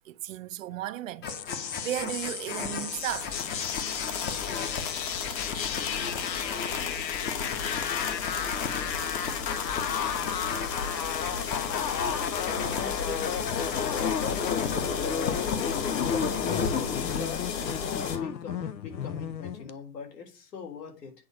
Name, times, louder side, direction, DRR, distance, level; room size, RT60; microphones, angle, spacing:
voice 1, 0.0-3.3, right 13 dB, 55° right, 0.6 m, -35 dB
sound 1, 1.2-17.2, left 6 dB, 20° left, 1.0 m, -35 dB
sound 2, 1.3-19.7, left 7 dB, 90° left, 0.9 m, -34 dB
sound 3, 2.8-18.2, left 6 dB, 50° left, 2.0 m, -35 dB
voice 2, 12.5-13.3 13.6-21.1, left 5 dB, 75° left, 3.5 m, -41 dB
8.7 x 4.0 x 6.4 m
hypercardioid pair, 125°, 50 cm